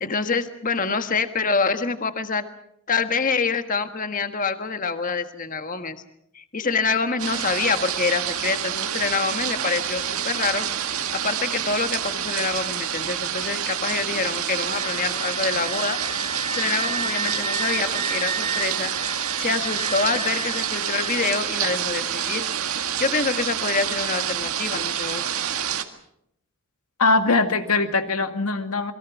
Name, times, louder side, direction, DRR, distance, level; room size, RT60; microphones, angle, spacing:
voice 1, 0.0-2.5 2.9-6.0 6.3-16.0 16.5-22.5 23.0-25.3, left 4 dB, 35° left, 8 dB, 1.5 m, -26 dB
sound 1, 7.2-25.8, right 9 dB, 80° right, 1.7 m, -28 dB
Wind instrument woodwind instrument, 14.8-21.2, right 2 dB, 25° right, 1.2 m, -32 dB
voice 2, 27.0-28.9, left 3 dB, 85° left, 8 dB, 2.1 m, -21 dB
28.0 x 22.5 x 6.2 m, 0.77 s
head